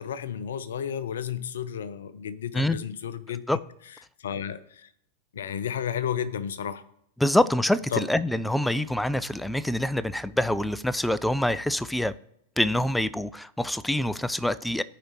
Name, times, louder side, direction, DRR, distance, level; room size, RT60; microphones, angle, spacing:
voice 1, 0.0-3.4 4.2-4.9 5.3-6.8 7.9-8.1, left 8 dB, 65° left, 15 dB, 0.6 m, -32 dB
voice 2, 7.2-12.1 12.6-14.8, left 1 dB, 5° left, 16 dB, 0.3 m, -25 dB
14.0 x 4.9 x 3.0 m, 0.74 s
figure-of-eight pair, 90°, 0 cm